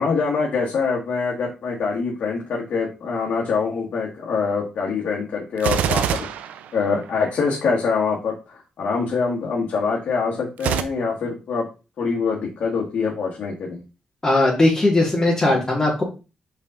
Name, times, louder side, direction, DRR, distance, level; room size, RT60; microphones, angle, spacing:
voice 1, 0.0-6.3 6.7-11.6 12.0-13.8, left 5 dB, 70° left, -3 dB, 1.7 m, -24 dB
Gunshot gunfire, 5.6-7.4 10.6-10.8, right 10 dB, 85° right, 0.5 m, -24 dB
voice 2, 14.2-16.0, left 2 dB, 25° left, -3 dB, 2.2 m, -18 dB
5.3 x 5.0 x 3.9 m, 0.31 s
cardioid pair, 70°, 3 cm